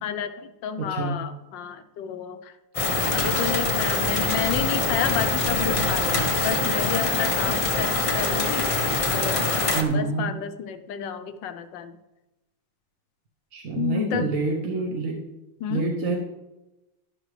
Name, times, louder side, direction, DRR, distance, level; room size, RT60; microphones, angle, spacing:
voice 1, 0.0-2.5 2.8-8.7 9.1-12.0 13.7-14.3 15.6-15.9, left 8 dB, 70° left, 10 dB, 1.3 m, -31 dB
voice 2, 0.8-1.2 9.7-10.3 13.5-15.2 15.7-16.2, right 3 dB, 45° right, -1 dB, 1.2 m, -27 dB
sound 1, 2.7-9.8, left 3 dB, 45° left, 0.4 m, -24 dB
12.0 x 12.0 x 3.3 m, 1.0 s
omnidirectional pair, 2.3 m